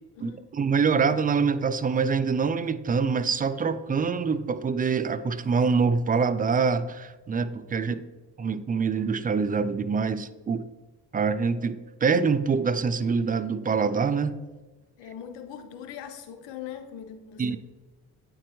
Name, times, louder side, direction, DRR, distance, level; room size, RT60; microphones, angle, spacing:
voice 1, 0.2-8.0 8.4-10.6 11.1-14.4 17.4-17.6, right 5 dB, 20° right, 0.4 m, -25 dB
voice 2, 15.0-17.6, left 9 dB, 90° left, 0.8 m, -41 dB
8.7 x 4.4 x 3.0 m
supercardioid pair, 55°, 42 cm